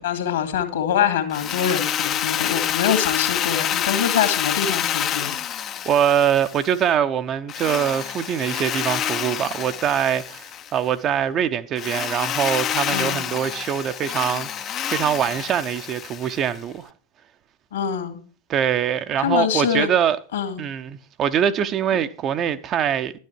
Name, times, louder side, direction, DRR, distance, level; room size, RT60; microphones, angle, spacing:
voice 1, 0.0-5.4 12.9-13.2 17.7-18.2 19.2-19.9 20.3-20.6, left 8 dB, 60° left, 2.2 m, -24 dB
Drill, 1.3-6.8 7.5-10.8 11.8-16.6, left 10 dB, 30° left, 0.6 m, -27 dB
voice 2, 5.8-16.9 18.5-20.2 20.6-23.1, right 9 dB, 30° right, 0.7 m, -23 dB
11.5 x 9.5 x 4.6 m
figure-of-eight pair, 90°, 0 cm